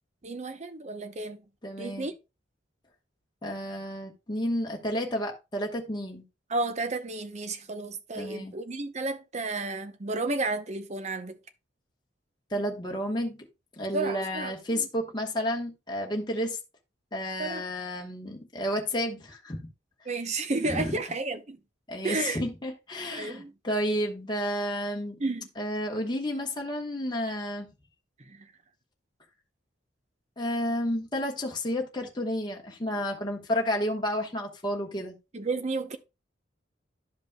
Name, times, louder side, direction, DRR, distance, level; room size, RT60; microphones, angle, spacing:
voice 1, 0.2-1.4 1.8-2.1 6.5-11.4 13.9-14.9 17.4-17.6 20.1-21.6 22.0-22.5 23.1-23.5 25.2-25.5 28.3-28.5 35.3-36.0, right 3 dB, 40° right, 0.8 m, -32 dB
voice 2, 1.6-2.1 3.4-6.2 8.2-8.5 12.5-13.4 13.8-16.6 17.1-19.7 20.6-20.9 21.9-25.2 25.6-27.7 30.4-35.2, equal, 25° left, 1.2 m, -31 dB
12.0 x 5.2 x 2.2 m
head